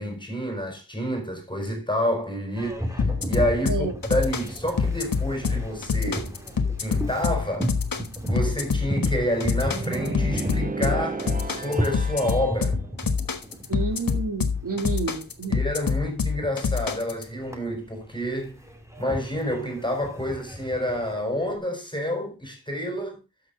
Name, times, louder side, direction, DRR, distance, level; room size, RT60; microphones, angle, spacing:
voice 1, 0.0-6.3 6.8-7.8 8.3-12.8 15.5-18.6 19.0-23.2, equal, 15° left, 4.0 m, -28 dB
Boat Water vehicle, 2.5-21.6, equal, 10° right, 2.1 m, -35 dB
sound 1, 3.0-17.2, left 5 dB, 70° left, 1.3 m, -26 dB
sound 2, 9.6-12.6, right 3 dB, 25° right, 0.7 m, -33 dB
voice 2, 13.7-15.6, right 4 dB, 60° right, 2.9 m, -29 dB
12.0 x 6.6 x 3.8 m
wide cardioid pair, 95°, 36 cm